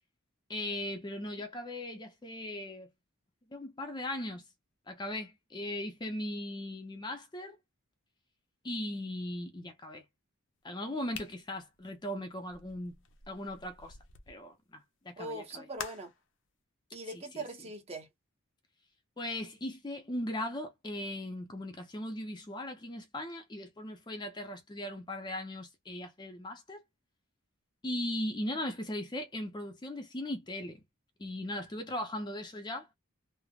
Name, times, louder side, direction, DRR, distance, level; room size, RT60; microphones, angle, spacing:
voice 1, 0.5-2.9 3.5-4.5 4.9-7.6 8.6-10.0 10.6-13.0 13.3-14.0 14.3-15.7 17.1-17.4 19.2-26.8 27.8-30.8 31.2-32.9, left 1 dB, 20° left, 0.5 m, -38 dB
sound 1, 11.1-14.4 15.8-16.2, left 6 dB, 60° left, 0.6 m, -47 dB
voice 2, 15.2-16.1 16.9-18.1, right 2 dB, 30° right, 0.8 m, -41 dB
3.2 x 2.0 x 2.3 m
head